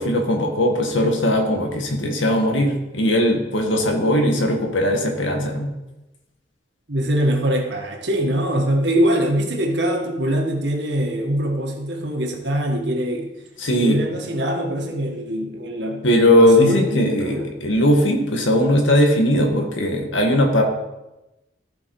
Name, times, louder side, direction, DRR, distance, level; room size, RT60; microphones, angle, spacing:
voice 1, 0.0-5.7 13.6-14.0 16.0-20.6, left 1 dB, 80° left, 3 dB, 1.7 m, -19 dB
voice 2, 6.9-13.3 13.8-16.0 16.4-17.5, equal, 65° right, 2 dB, 1.7 m, -23 dB
14.0 x 5.4 x 4.7 m, 0.98 s
head